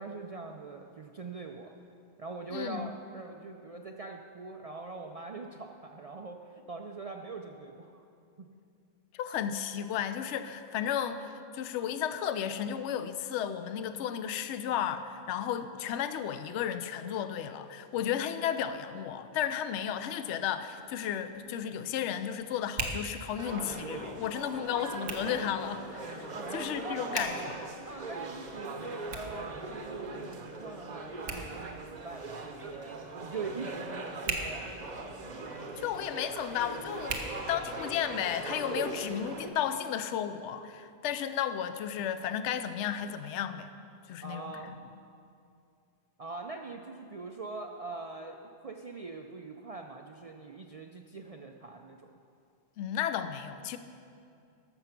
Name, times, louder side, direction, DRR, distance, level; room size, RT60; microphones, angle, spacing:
voice 1, 0.0-1.7 2.2-8.0 8.4-8.5 26.3-27.5 27.8-34.7 44.2-44.7 46.2-52.1, right 3 dB, 70° right, 3 dB, 0.3 m, -42 dB
voice 2, 2.5-2.9 9.1-27.5 35.4-37.2 37.5-43.7 44.1-44.5 52.8-53.8, left 9 dB, 70° left, 11 dB, 0.8 m, -33 dB
Hands, 20.5-38.2, right 3 dB, 90° right, 1.5 m, -44 dB
sound 1, 23.4-39.5, right 3 dB, 40° right, 0.8 m, -41 dB
13.5 x 6.8 x 5.9 m, 2.5 s
omnidirectional pair, 1.3 m